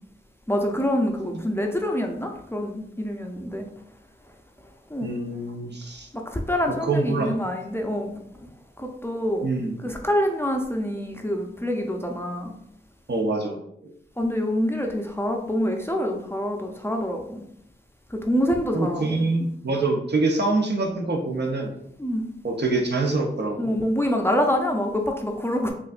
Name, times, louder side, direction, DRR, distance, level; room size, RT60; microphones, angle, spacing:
voice 1, 0.5-3.7 4.9-5.2 6.1-8.1 8.4-8.5 8.8-9.5 9.8-12.5 14.2-17.4 18.1-19.2 22.0-22.3 23.6-25.7, equal, 10° left, 2 dB, 0.5 m, -26 dB
voice 2, 5.0-6.1 6.8-7.4 9.4-9.7 13.1-13.9 18.7-21.7 22.4-23.7, right 2 dB, 60° right, 1 dB, 0.7 m, -25 dB
4.9 x 2.5 x 2.4 m, 0.73 s
wide cardioid pair, 50°, 20 cm